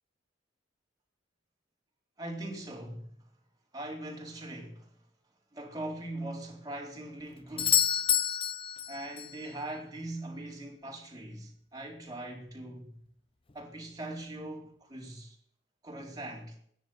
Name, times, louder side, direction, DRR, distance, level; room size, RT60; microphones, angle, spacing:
voice 1, 2.2-3.0 3.7-4.9 5.5-8.0 8.9-13.0 13.5-15.4 15.8-16.6, right 1 dB, 20° right, 4.2 m, -41 dB
Doorbell, 7.6-9.4 13.5-13.6, left 10 dB, 30° left, 0.7 m, -28 dB
13.5 x 10.5 x 9.5 m
head